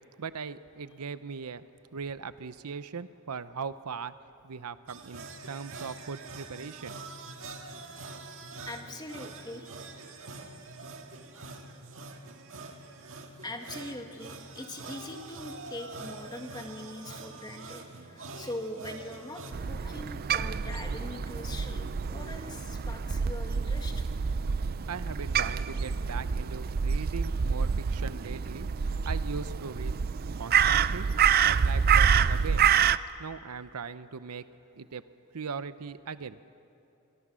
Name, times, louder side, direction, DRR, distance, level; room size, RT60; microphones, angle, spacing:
voice 1, 0.2-1.6 1.9-4.1 4.4-7.0 24.9-28.7 29.0-29.9 30.4-31.1 31.4-32.6 33.2-34.4 34.8-35.0 35.3-36.4, right 5 dB, 85° right, 14 dB, 0.7 m, -39 dB
sound 1, 4.9-19.5, right 3 dB, 60° right, 1.9 m, -44 dB
voice 2, 7.7-10.0 10.4-10.5 13.4-24.1 33.3-33.4, left 1 dB, 20° left, 4 dB, 1.9 m, -42 dB
Crow, 19.5-33.0, right 7 dB, 45° right, 0.4 m, -27 dB
25.0 x 22.0 x 6.3 m, 2.8 s
head